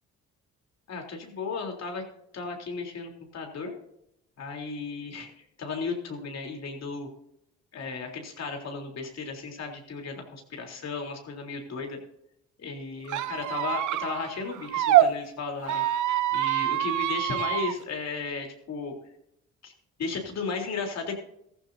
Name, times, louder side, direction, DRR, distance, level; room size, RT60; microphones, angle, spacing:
voice 1, 0.9-2.0 2.3-3.7 4.4-7.1 7.7-12.0 12.6-15.8 16.3-18.9 19.6-19.7 20.0-21.1, left 4 dB, 60° left, 2 dB, 3.6 m, -35 dB
Squeak, 13.1-15.1 15.6-17.7, right 13 dB, 80° right, 0.8 m, -25 dB
15.0 x 15.0 x 2.8 m, 0.76 s
cardioid pair, 90°, 30 cm